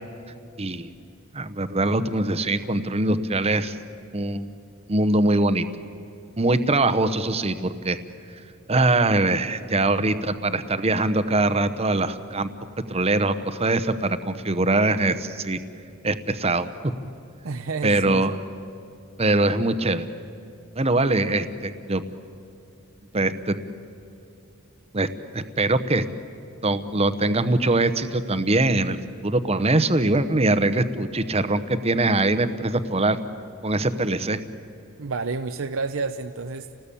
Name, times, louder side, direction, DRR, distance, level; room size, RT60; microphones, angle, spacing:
voice 1, 0.6-0.9 1.3-3.8 4.1-4.5 4.9-5.7 6.4-8.0 8.7-12.5 12.9-15.6 16.0-16.9 17.8-18.4 19.2-20.1 20.8-22.0 23.1-23.6 24.9-25.1 25.3-26.1 26.6-29.0 29.2-33.2 33.6-34.4, right 2 dB, 30° right, 12 dB, 0.9 m, -22 dB
voice 2, 17.4-18.2 35.0-36.7, right 4 dB, 70° right, 7 dB, 0.7 m, -30 dB
29.5 x 19.0 x 8.5 m, 2.5 s
head